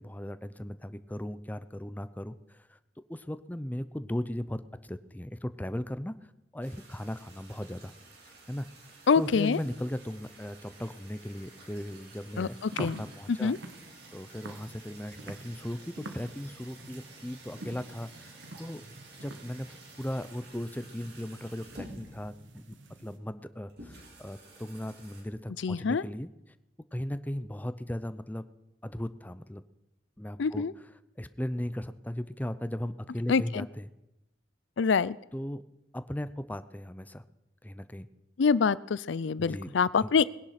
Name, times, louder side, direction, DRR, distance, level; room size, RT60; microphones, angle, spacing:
voice 1, 0.0-2.8 3.1-6.2 6.5-7.9 8.2-13.5 14.1-18.8 19.2-19.7 20.0-26.3 26.9-28.5 28.8-29.6 30.2-30.6 31.2-33.9 35.3-35.6 35.9-37.2 37.6-38.1 39.4-39.7 40.0-40.1, left 1 dB, 10° left, 13 dB, 0.6 m, -37 dB
sound 1, 6.6-25.2, right 2 dB, 60° right, 4.7 m, -52 dB
voice 2, 9.1-9.6 12.4-13.0 13.3-13.6 25.6-26.0 30.4-30.7 33.3-33.7 34.8-35.2 38.4-40.3, left 5 dB, 70° left, 19 dB, 0.5 m, -25 dB
sound 2, 12.5-23.2, right 2 dB, 75° right, 1.8 m, -47 dB
20.0 x 10.5 x 5.8 m, 0.91 s
head